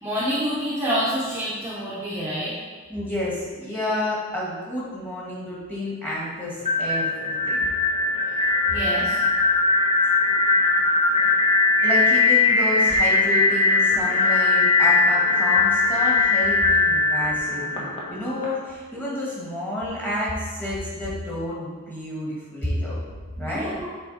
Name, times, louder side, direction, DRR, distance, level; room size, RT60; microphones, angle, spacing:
voice 1, 0.0-2.5 8.7-9.2 23.4-23.9, equal, 10° right, -9 dB, 1.0 m, -27 dB
voice 2, 2.9-7.7 11.1-11.3 11.8-23.0 23.4-23.8, left 1 dB, 10° left, -7 dB, 1.8 m, -30 dB
sound 1, 6.6-18.4, left 3 dB, 30° left, 1.2 m, -20 dB
7.3 x 4.3 x 4.1 m, 1.5 s
head